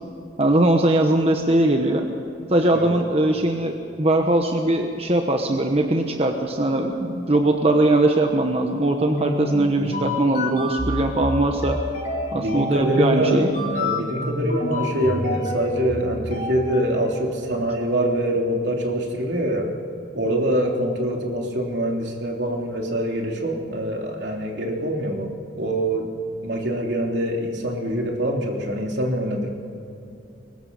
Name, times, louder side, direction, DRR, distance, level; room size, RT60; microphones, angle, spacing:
voice 1, 0.4-2.1 2.5-11.8 12.3-13.5, right 1 dB, 35° right, 4 dB, 1.1 m, -20 dB
sound 1, 9.1-17.0, left 1 dB, 45° left, 5.0 m, -28 dB
voice 2, 12.3-19.7 20.1-25.3 25.6-26.1 26.4-29.5, right 1 dB, 70° right, 1 dB, 3.3 m, -24 dB
23.0 x 20.0 x 5.5 m, 2.8 s
head